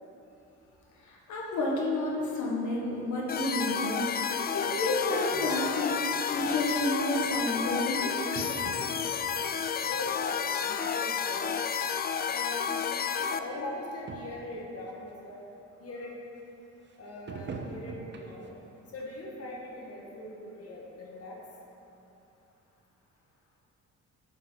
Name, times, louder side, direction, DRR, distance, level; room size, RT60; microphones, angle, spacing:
voice 1, 1.0-6.0 6.3-8.2, left 1 dB, 75° left, -3 dB, 1.4 m, -30 dB
sound 1, 3.3-13.4, left 7 dB, 30° left, 0.4 m, -31 dB
sound 2, 6.4-6.5 7.5-7.6 8.4-9.3 9.8-10.3 10.7-10.9 11.8-11.9 12.1-12.2 13.0-13.1 13.4-13.5 13.8-13.9 14.1-14.5 15.1-15.2 17.3-18.6 19.0-19.2 19.7-19.8, right 4 dB, 35° right, 0.6 m, -42 dB
voice 2, 9.9-11.5 12.2-12.8 13.2-15.4 15.8-16.1 17.0-18.4 18.9-21.4, left 1 dB, 50° left, -3 dB, 1.5 m, -41 dB
9.1 x 5.4 x 4.0 m, 2.9 s
cardioid pair, 90°, 30 cm